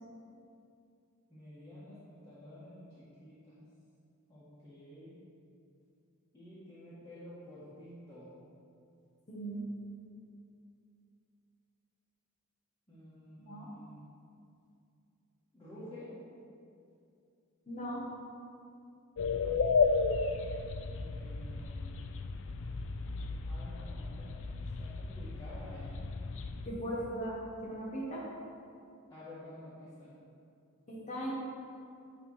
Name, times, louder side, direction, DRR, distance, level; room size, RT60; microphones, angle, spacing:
voice 1, 1.3-3.6 4.3-5.1 6.3-8.3 12.9-14.0 15.5-16.1 21.0-22.1 23.5-26.0 29.1-30.1, left 1 dB, 15° left, -14 dB, 1.7 m, -51 dB
voice 2, 9.3-9.6 13.4-13.7 17.7-18.0 26.7-27.4 27.6-28.2 30.9-31.3, right 1 dB, 35° left, -6 dB, 1.1 m, -38 dB
sound 1, 19.2-26.7, left 4 dB, 60° left, 0.5 m, -33 dB
9.2 x 3.5 x 5.6 m, 2.5 s
head